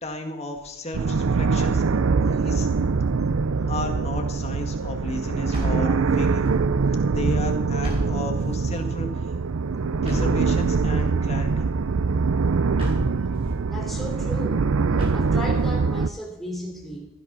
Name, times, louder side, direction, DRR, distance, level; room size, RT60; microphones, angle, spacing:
voice 1, 0.0-1.8 2.3-2.7 3.7-6.5 7.1-9.3 10.0-11.7, left 2 dB, 30° left, 3 dB, 1.9 m, -33 dB
sound 1, 0.9-16.1, right 4 dB, 85° right, 0.5 m, -23 dB
voice 2, 5.5-5.9 13.7-14.7 15.1-17.1, left 1 dB, ahead, -1 dB, 3.3 m, -35 dB
sound 2, 5.5-6.5 7.8-8.8 10.0-11.0 12.8-13.6 15.0-15.8, equal, 30° right, 5.5 m, -31 dB
16.0 x 11.5 x 6.2 m, 0.91 s
head